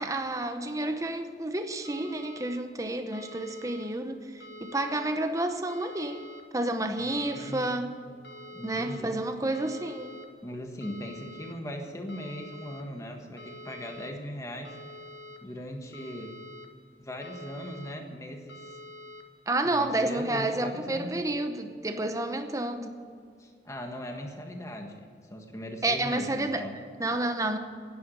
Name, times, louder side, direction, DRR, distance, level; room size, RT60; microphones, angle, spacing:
voice 1, 0.0-6.3 6.5-8.0 8.6-10.2 19.5-23.0 25.8-27.6, right 2 dB, 20° right, 7 dB, 0.8 m, -30 dB
sound 1, 1.8-2.6 3.1-3.9 4.4-5.1 5.7-6.4 7.0-7.7 8.2-9.0 9.5-10.3 10.8-11.5 12.1-12.8 13.4-14.1 14.6-15.4 15.9-16.7 17.2-17.9 18.5-19.2, left 1 dB, 60° left, 1.6 m, -46 dB
voice 2, 7.4-7.9 8.5-9.2 10.4-14.7 15.4-16.4 17.0-18.8 19.6-21.1 23.4-26.7, equal, 15° left, 3 dB, 1.5 m, -39 dB
10.5 x 9.6 x 9.5 m, 2.2 s
head